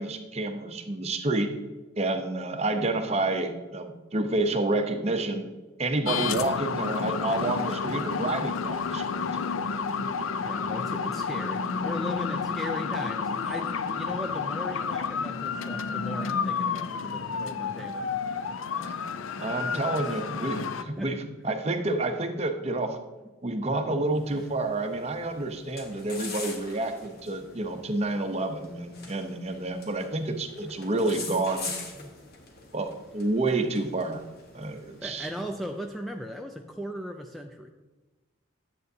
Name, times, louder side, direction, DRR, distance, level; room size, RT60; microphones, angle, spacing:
voice 1, 0.0-1.5 2.0-5.5 5.8-9.3 18.8-19.0 19.4-23.0 23.4-31.7 32.7-34.2 34.5-35.3, right 2 dB, 30° right, 6 dB, 0.7 m, -29 dB
sound 1, 6.1-20.8, left 5 dB, 80° left, 0.5 m, -30 dB
voice 2, 10.4-18.3 19.7-20.2 20.8-21.2 21.5-21.7 32.0-32.1 35.0-37.7, equal, ahead, 3 dB, 0.3 m, -38 dB
sound 2, 24.0-35.8, left 4 dB, 50° left, 1.2 m, -44 dB
10.5 x 7.7 x 2.7 m, 1.2 s
head